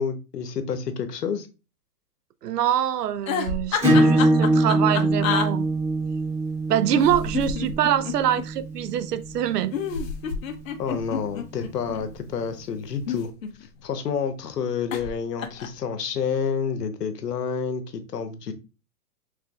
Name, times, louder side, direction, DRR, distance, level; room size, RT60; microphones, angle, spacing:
voice 1, 0.0-1.5 10.8-13.3 13.8-18.5, left 6 dB, 90° left, 0.9 m, -29 dB
voice 2, 2.4-5.7 6.7-9.7, right 10 dB, 90° right, 0.6 m, -24 dB
sound 1, 3.2-5.5 6.9-8.4 9.7-12.0 12.9-13.9 14.9-15.1 15.4-15.8, left 6 dB, 60° left, 0.7 m, -29 dB
Acoustic guitar / Strum, 3.8-9.1, right 1 dB, 10° right, 1.8 m, -22 dB
5.0 x 3.4 x 2.3 m
hypercardioid pair, 150°, 46 cm